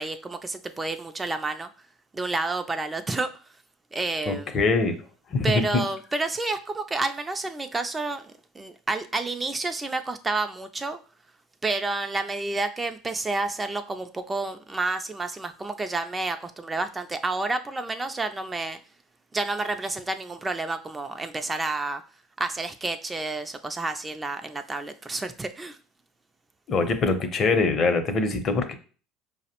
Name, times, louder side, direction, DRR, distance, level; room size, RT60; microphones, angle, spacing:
voice 1, 0.0-1.7 2.1-3.3 3.9-4.6 5.4-11.0 11.6-18.8 19.3-22.0 22.4-25.8, right 3 dB, 20° right, 8 dB, 0.4 m, -30 dB
voice 2, 4.3-4.9 5.3-5.6 26.7-28.7, left 3 dB, 45° left, 8 dB, 0.6 m, -23 dB
4.7 x 2.0 x 2.9 m, 0.38 s
supercardioid pair, 85°, 0 cm